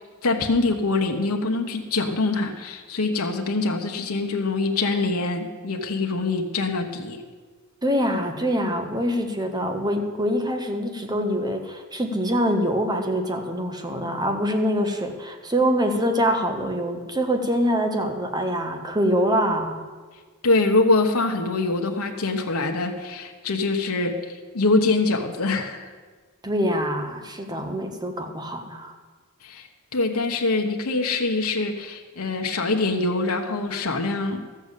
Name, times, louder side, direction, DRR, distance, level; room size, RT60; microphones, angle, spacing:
voice 1, 0.2-7.2 20.4-25.9 29.4-29.7 29.9-34.5, left 3 dB, 80° left, 2 dB, 1.1 m, -24 dB
voice 2, 7.8-19.8 26.4-28.9, equal, 20° right, 5 dB, 1.3 m, -24 dB
13.0 x 7.1 x 8.2 m, 1.4 s
head